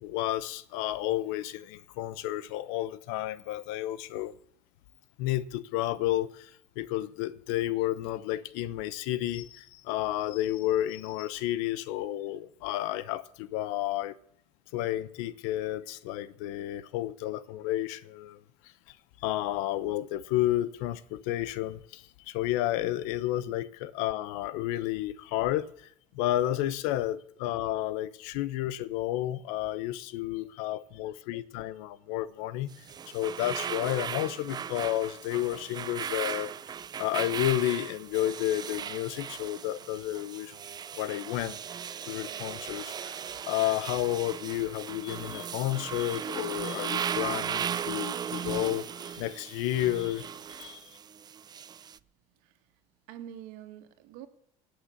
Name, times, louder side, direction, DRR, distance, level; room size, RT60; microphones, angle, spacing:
voice 1, 0.0-4.3 5.2-6.5 6.8-14.2 14.7-18.4 19.2-25.7 26.1-32.7 33.1-36.5 37.0-40.6 40.9-41.6 42.1-50.2 50.5-50.8, left 14 dB, 90° left, 0.9 m, -31 dB
sound 1, 32.7-52.0, right 8 dB, 30° right, 0.5 m, -37 dB
voice 2, 53.1-54.3, right 10 dB, 85° right, 1.9 m, -46 dB
18.0 x 6.7 x 8.0 m
cardioid pair, 120°, 14 cm